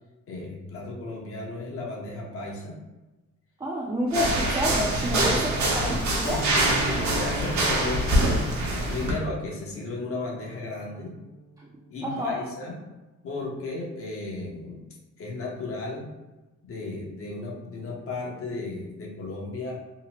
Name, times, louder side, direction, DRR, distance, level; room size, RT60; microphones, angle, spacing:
voice 1, 0.3-2.8 5.2-5.9 6.5-8.5 8.9-11.1 11.9-12.8 13.2-14.8 15.2-16.1 16.6-19.8, left 2 dB, 50° left, -2 dB, 0.7 m, -35 dB
voice 2, 3.6-6.5 12.0-12.4, left 1 dB, 15° right, -3 dB, 0.4 m, -29 dB
sound 1, 4.1-9.1, right 1 dB, 70° right, 0.8 m, -24 dB
Keyboard (musical), 6.2-11.4, right 2 dB, 75° left, 1.0 m, -39 dB
2.8 x 2.0 x 2.9 m, 1.1 s
cardioid pair, 90°, 30 cm